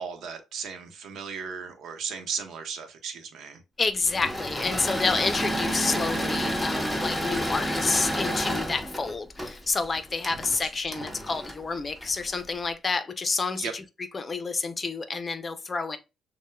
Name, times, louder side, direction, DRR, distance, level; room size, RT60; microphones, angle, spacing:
voice 1, 0.0-3.6 10.4-11.1 13.5-13.7, right 6 dB, 75° right, 0.8 m, -36 dB
voice 2, 3.8-13.8 14.1-16.0, left 4 dB, 35° left, 0.6 m, -29 dB
Engine / Mechanisms, 4.0-12.4, equal, ahead, 0.8 m, -30 dB
6.3 x 2.2 x 2.3 m
cardioid pair, 90°, 0 cm